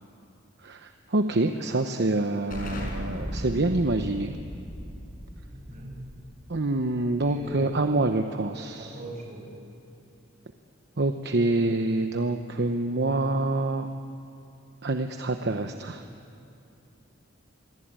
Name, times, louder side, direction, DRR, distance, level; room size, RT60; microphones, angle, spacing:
voice 1, 0.6-4.4 6.5-9.0 11.0-13.9 14.8-16.0, right 2 dB, 55° right, 6 dB, 1.0 m, -26 dB
Explosion, 2.5-7.9, equal, 45° left, 5.6 m, -37 dB
voice 2, 7.2-7.8 8.8-9.5, right 1 dB, 35° right, 1 dB, 6.2 m, -40 dB
26.5 x 23.0 x 9.0 m, 2.7 s
head